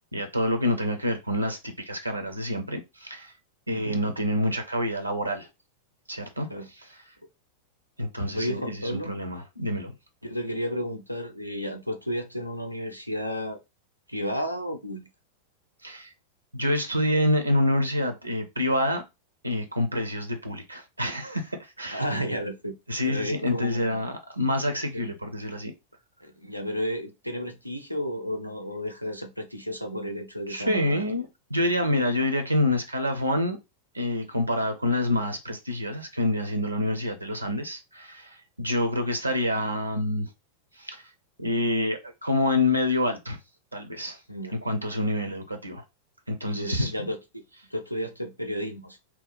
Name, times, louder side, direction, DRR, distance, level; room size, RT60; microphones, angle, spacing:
voice 1, 0.1-3.3 3.7-5.5 6.1-6.5 8.0-9.9 15.8-16.1 16.5-19.0 19.4-22.0 22.9-25.7 30.5-33.6 33.9-40.3 40.8-41.0 41.4-43.4 43.7-44.2 44.6-45.8 46.3-46.9, left 1 dB, 85° right, 0.5 m, -27 dB
voice 2, 8.3-9.2 10.2-13.6 14.1-15.1 21.9-22.7 23.1-24.1 24.9-25.0 26.2-31.0 44.3-44.6 46.4-47.4 47.7-49.0, equal, 90° left, 0.6 m, -32 dB
2.8 x 2.1 x 3.8 m
figure-of-eight pair, 90°, 0 cm